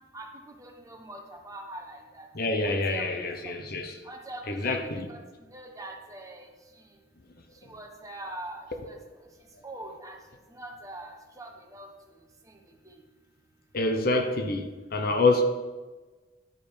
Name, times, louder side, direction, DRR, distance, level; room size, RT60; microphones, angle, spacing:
voice 1, 0.1-2.3 2.6-3.5 4.0-4.8 5.1-6.5 6.7-6.9 7.6-9.3 9.6-10.2 10.5-11.9 12.5-12.6 12.8-12.9, right 1 dB, 20° right, 1.1 m, -43 dB
voice 2, 2.3-4.0 4.5-5.1 13.7-15.4, left 2 dB, 55° left, 0.9 m, -26 dB
11.0 x 5.3 x 4.9 m
head